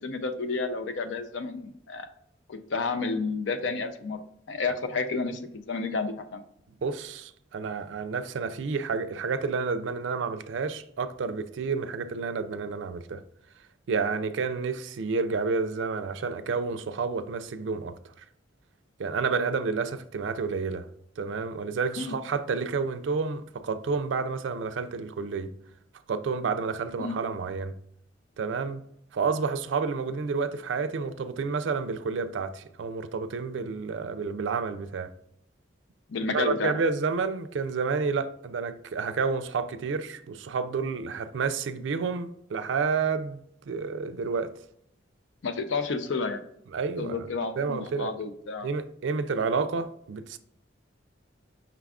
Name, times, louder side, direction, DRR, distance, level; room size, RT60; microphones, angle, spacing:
voice 1, 0.0-2.1 2.5-4.2 4.5-6.4 22.0-22.2 27.0-27.2 36.1-36.7 45.4-46.4 47.0-48.7, left 4 dB, 75° left, 0.5 m, -31 dB
voice 2, 6.8-13.2 13.9-18.2 19.0-20.9 21.2-25.5 26.1-27.7 28.4-28.8 29.1-35.1 36.2-44.5 46.7-47.3 47.6-48.1 48.6-50.4, right 5 dB, 75° right, 0.4 m, -30 dB
5.8 x 2.4 x 3.5 m
head